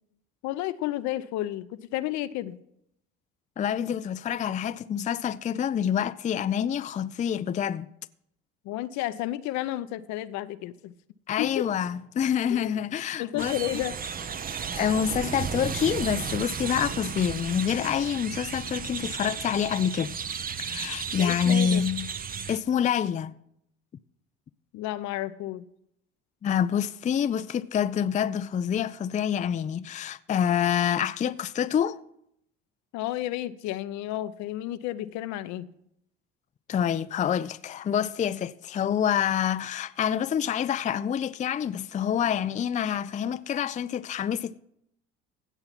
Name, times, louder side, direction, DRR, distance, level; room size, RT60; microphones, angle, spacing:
voice 1, 0.4-2.6 8.6-10.9 11.4-11.6 12.5-12.7 13.2-14.0 21.2-21.8 24.7-25.6 32.9-35.7, left 14 dB, 70° left, 0.7 m, -31 dB
voice 2, 3.6-7.9 11.3-13.6 14.5-20.1 20.6-22.1 22.5-23.3 26.4-32.0 36.7-44.6, left 8 dB, 25° left, 0.4 m, -27 dB
sound 1, 13.4-22.6, right 7 dB, 30° right, 0.7 m, -34 dB
16.0 x 5.8 x 5.8 m
hypercardioid pair, 65°, 30 cm